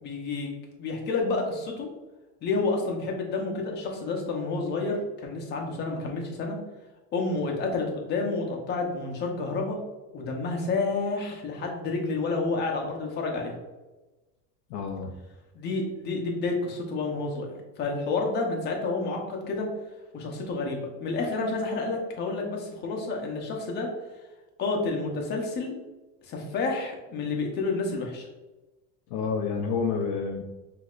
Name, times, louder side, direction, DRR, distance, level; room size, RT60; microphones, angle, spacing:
voice 1, 0.0-1.9 2.4-6.6 7.1-9.8 10.1-13.6 15.5-19.7 20.1-23.9 24.6-25.7 26.2-28.3, left 3 dB, 30° left, 1 dB, 0.9 m, -29 dB
voice 2, 14.7-15.1 29.1-30.4, left 5 dB, 55° left, 1 dB, 0.6 m, -29 dB
6.2 x 2.8 x 2.5 m, 1.1 s
cardioid pair, 155°, 34 cm